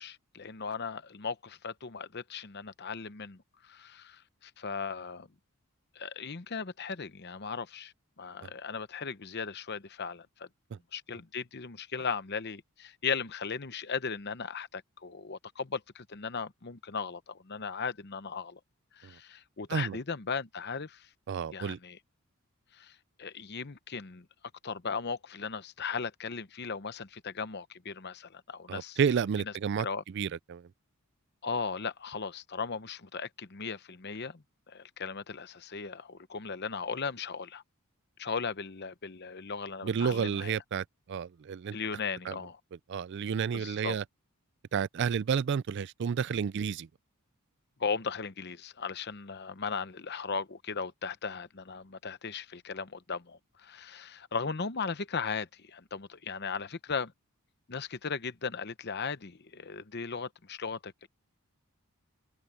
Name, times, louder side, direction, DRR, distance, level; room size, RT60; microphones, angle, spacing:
voice 1, 0.0-5.3 5.9-10.5 10.9-18.6 18.9-21.1 21.5-22.0 22.7-24.3 24.6-29.0 29.8-30.0 31.4-37.6 38.2-40.6 41.7-42.6 43.5-43.9 47.8-57.1 57.7-61.1, left 5 dB, 45° left, 0.9 m, -37 dB
voice 2, 21.3-21.8 28.7-29.9 30.1-30.7 39.8-41.8 42.3-42.4 42.9-44.0 44.7-46.9, right 7 dB, 50° right, 0.3 m, -31 dB
head